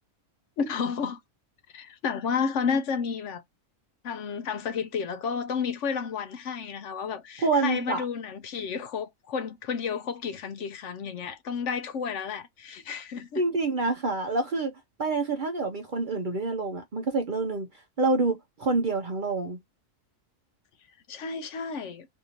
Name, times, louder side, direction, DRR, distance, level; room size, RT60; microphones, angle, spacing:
voice 1, 0.6-1.2 1.7-3.4 4.0-13.4 21.1-22.1, left 6 dB, 65° left, 0.9 m, -31 dB
voice 2, 7.4-8.0 13.4-14.7 15.0-17.7 18.0-19.6, right 3 dB, 50° right, 0.6 m, -27 dB
3.5 x 2.6 x 2.8 m
omnidirectional pair, 1.4 m